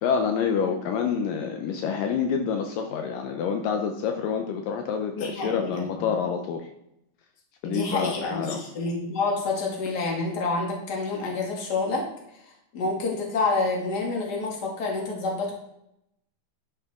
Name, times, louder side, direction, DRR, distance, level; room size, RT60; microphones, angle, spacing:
voice 1, 0.0-6.7 7.6-8.6, left 6 dB, 75° left, 4 dB, 2.4 m, -27 dB
voice 2, 5.2-6.1 7.6-12.0 12.4-15.5, left 3 dB, 30° left, -1 dB, 2.3 m, -28 dB
11.0 x 8.2 x 3.7 m, 0.80 s
omnidirectional pair, 4.1 m